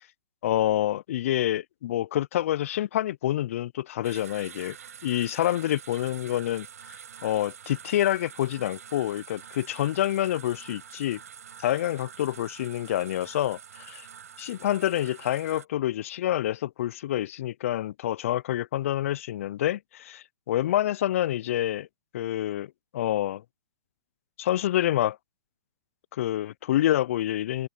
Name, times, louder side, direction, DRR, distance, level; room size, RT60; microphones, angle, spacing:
voice 1, 0.4-4.8 5.0-6.7 7.2-11.2 11.6-14.1 14.4-21.9 22.1-22.7 22.9-23.4 24.4-25.2 26.1-27.7, left 13 dB, 55° left, 0.5 m, -27 dB
sound 1, 4.0-15.7, right 8 dB, 70° right, 5.5 m, -46 dB
hypercardioid pair, 120°, 9 cm